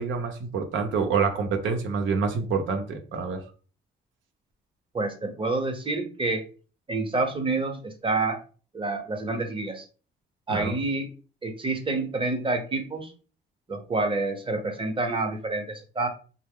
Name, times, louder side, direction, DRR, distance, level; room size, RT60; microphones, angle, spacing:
voice 1, 0.0-3.4 10.5-10.7, right 5 dB, 75° right, 5 dB, 0.7 m, -27 dB
voice 2, 4.9-6.4 6.9-8.4 8.7-9.9 10.5-11.1 11.4-13.1 13.7-16.1, right 3 dB, 25° right, 5 dB, 0.8 m, -28 dB
3.1 x 2.0 x 3.6 m, 0.38 s
cardioid pair, 90°, 20 cm